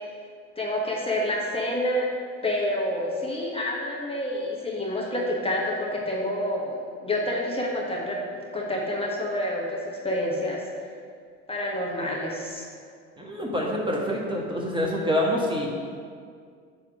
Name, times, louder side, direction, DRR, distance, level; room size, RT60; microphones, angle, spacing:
voice 1, 0.6-2.1 2.4-8.2 8.5-10.6 11.5-12.7, left 1 dB, 15° left, -3 dB, 1.5 m, -28 dB
voice 2, 13.2-15.7, equal, 10° right, -2 dB, 1.5 m, -26 dB
10.0 x 3.6 x 6.1 m, 2.1 s
hypercardioid pair, 70°, 40 cm